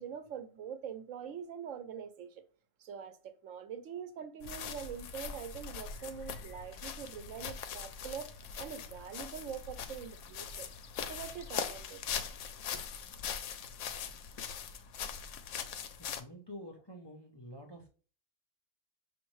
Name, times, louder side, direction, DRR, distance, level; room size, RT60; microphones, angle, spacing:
voice 1, 0.0-2.4 2.8-10.7 11.1-12.0 12.7-12.8, right 8 dB, 85° right, 1.0 m, -44 dB
sound 1, 4.4-16.2, left 7 dB, 75° left, 0.9 m, -41 dB
voice 2, 16.0-17.9, equal, 30° left, 0.5 m, -48 dB
6.1 x 2.6 x 3.1 m
omnidirectional pair, 1.3 m